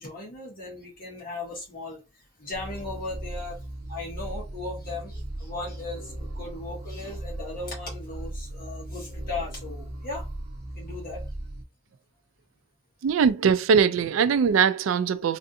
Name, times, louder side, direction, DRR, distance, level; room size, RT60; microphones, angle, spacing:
voice 1, 0.0-2.0 2.4-3.5 3.9-10.2 10.7-11.2, left 2 dB, 45° left, 1.7 m, -37 dB
sound 1, 2.5-11.6, right 1 dB, 50° right, 0.7 m, -37 dB
voice 2, 13.0-15.4, right 6 dB, 90° right, 0.4 m, -21 dB
3.2 x 2.6 x 2.6 m
head